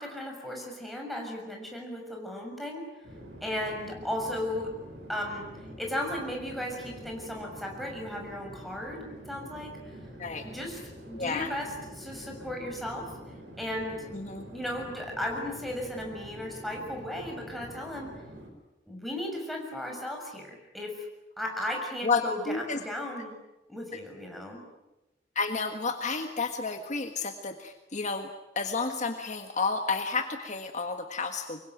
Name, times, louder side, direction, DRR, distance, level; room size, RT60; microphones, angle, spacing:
voice 1, 0.0-2.8 3.4-4.7 5.1-5.5 5.8-9.8 10.4-10.8 11.1-13.1 13.6-14.1 14.4-18.1 18.9-21.1 21.4-23.3 23.7-24.6, left 1 dB, ahead, 0 dB, 6.7 m, -35 dB
Chatter / Fixed-wing aircraft airplane, 3.0-18.5, equal, 75° right, 5.8 m, -46 dB
voice 2, 11.1-11.5 14.1-14.5 22.0-22.8 25.3-28.3 28.5-31.6, left 4 dB, 40° left, 6 dB, 1.5 m, -31 dB
25.0 x 23.0 x 9.3 m, 1.0 s
head